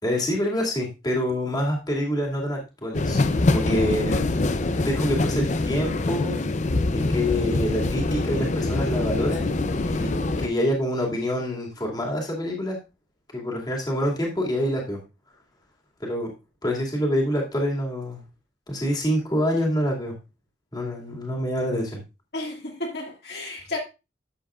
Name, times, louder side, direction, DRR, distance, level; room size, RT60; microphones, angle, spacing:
voice 1, 0.0-3.2 3.5-4.2 4.8-6.4 7.1-9.5 9.8-10.1 10.4-12.8 13.3-15.0 16.0-16.3 16.6-18.2 18.7-20.2 20.7-22.0, equal, 20° left, 2.3 m, -26 dB
sound 1, 2.9-10.5, left 2 dB, 40° left, 0.5 m, -24 dB
voice 2, 22.3-23.8, left 2 dB, 60° left, 2.0 m, -32 dB
12.0 x 7.7 x 2.4 m
head